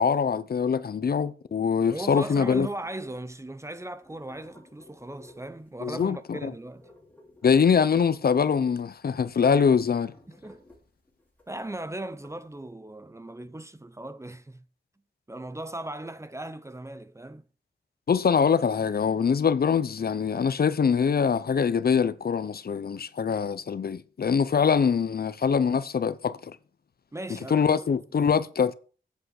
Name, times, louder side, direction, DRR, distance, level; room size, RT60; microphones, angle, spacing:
voice 1, 0.0-2.7 5.8-6.5 7.4-10.1 18.1-26.6 27.5-28.7, left 6 dB, 55° left, 0.6 m, -23 dB
voice 2, 1.9-6.9 10.3-10.6 11.5-14.7 15.3-17.5 27.1-28.0, right 1 dB, 15° right, 0.6 m, -38 dB
sound 1, 2.7-12.6, left 1 dB, 10° left, 3.2 m, -56 dB
8.3 x 7.7 x 6.4 m
wide cardioid pair, 125°, 18 cm